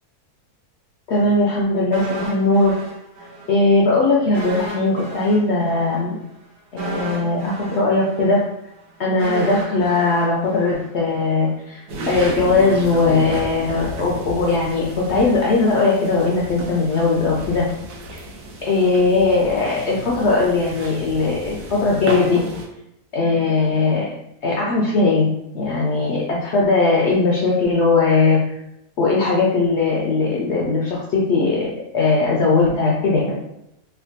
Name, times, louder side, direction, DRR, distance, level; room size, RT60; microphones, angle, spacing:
voice 1, 1.1-2.8 3.5-6.2 6.7-8.4 9.0-11.8 12.1-17.7 18.7-22.4 23.1-24.1 24.4-28.4 29.0-33.4, left 3 dB, 75° left, -4 dB, 0.6 m, -19 dB
sound 1, 1.9-3.6 3.8-4.0 4.3-11.4 11.7-11.9, right 2 dB, 85° right, 1.4 m, -34 dB
sound 2, 11.9-22.7, right 1 dB, 70° right, 1.0 m, -32 dB
3.3 x 2.1 x 2.6 m, 0.82 s
omnidirectional pair, 1.6 m